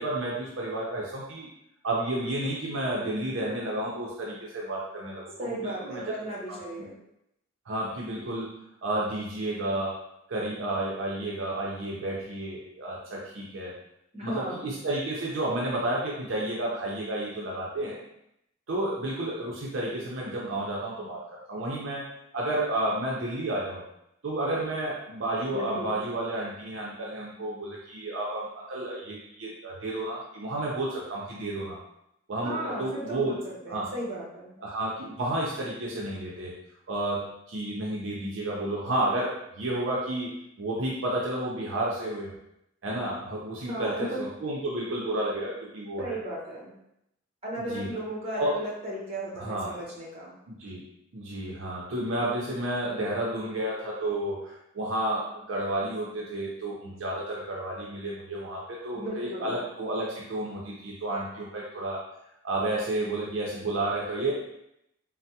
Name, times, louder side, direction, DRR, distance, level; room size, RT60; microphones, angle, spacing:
voice 1, 0.0-1.5 1.8-6.0 6.5-6.9 7.7-8.5 8.8-10.0 10.3-13.7 14.2-18.0 18.7-21.2 21.5-22.1 22.3-23.8 24.2-31.8 32.3-33.3 33.7-33.9 34.6-36.5 36.9-42.3 42.8-46.1 47.5-47.9 48.4-48.6 49.4-49.7 50.5-50.8 51.1-62.0 62.4-64.3, right 1 dB, 70° right, -3 dB, 0.5 m, -31 dB
voice 2, 5.4-7.0 14.1-14.7 25.5-25.9 32.4-34.6 43.7-44.2 46.0-46.7 47.4-50.4 58.9-59.5, right 1 dB, 30° right, -5 dB, 0.9 m, -35 dB
3.3 x 2.0 x 2.7 m, 0.80 s
head